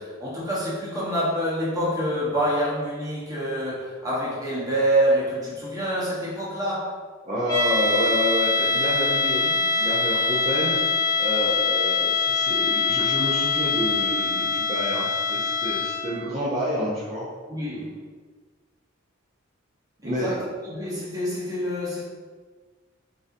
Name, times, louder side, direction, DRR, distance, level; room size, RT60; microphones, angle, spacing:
voice 1, 0.0-7.0 17.5-18.0 20.0-22.0, right 1 dB, 15° right, -7 dB, 1.1 m, -26 dB
voice 2, 7.2-10.8 11.2-17.2 20.0-20.3, equal, 35° right, -9 dB, 0.7 m, -28 dB
sound 1, 7.5-16.2, left 4 dB, 20° left, 0.5 m, -24 dB
3.9 x 3.8 x 2.6 m, 1.4 s
head